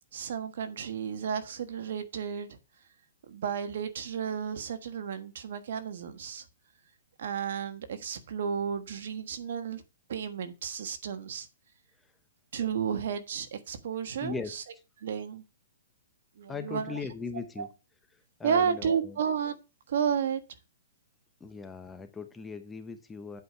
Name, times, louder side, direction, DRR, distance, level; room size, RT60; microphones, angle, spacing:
voice 1, 0.1-2.6 3.3-6.4 7.2-9.8 10.1-11.5 12.5-14.6 15.0-15.4 16.4-17.0 17.6-17.7 18.4-19.5 19.9-20.4, right 7 dB, 65° right, 1.4 m, -32 dB
voice 2, 14.2-14.6 16.5-17.7 18.4-19.2 21.4-23.4, left 5 dB, 10° left, 1.0 m, -39 dB
8.2 x 5.0 x 5.6 m
hypercardioid pair, 150°, 0 cm